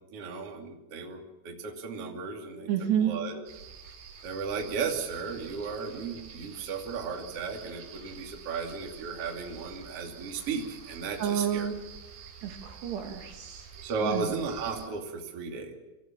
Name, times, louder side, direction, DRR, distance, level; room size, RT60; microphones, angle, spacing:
voice 1, 0.1-2.7 3.0-3.4 4.2-11.7 13.8-15.7, right 5 dB, 35° right, 1 dB, 2.8 m, -35 dB
voice 2, 2.7-3.2 11.2-11.7 12.4-13.7 14.0-14.4, right 9 dB, 65° right, 3 dB, 3.8 m, -30 dB
sound 1, 3.5-14.9, right 6 dB, 80° right, 7.5 m, -48 dB
26.5 x 15.0 x 7.5 m, 1.0 s
omnidirectional pair, 5.7 m